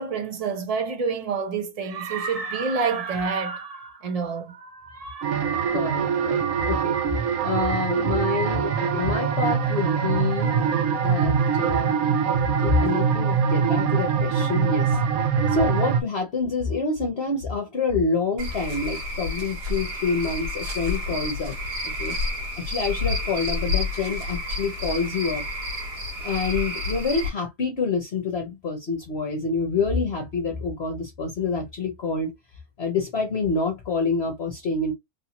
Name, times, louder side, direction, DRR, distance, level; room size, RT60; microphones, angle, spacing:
voice 1, 0.0-5.2, right 5 dB, 50° right, 0.4 m, -28 dB
sound 1, 5.2-16.0, right 6 dB, 70° right, 1.0 m, -23 dB
voice 2, 5.7-7.1 7.4-10.7 10.9-11.9 12.6-15.0 15.5-21.5 22.0-22.2 22.6-25.4 26.2-32.3 32.8-34.9, left 4 dB, 50° left, 0.9 m, -27 dB
Cricket / Frog, 18.4-27.3, left 2 dB, 85° right, 1.7 m, -30 dB
3.4 x 2.7 x 2.8 m
omnidirectional pair, 1.7 m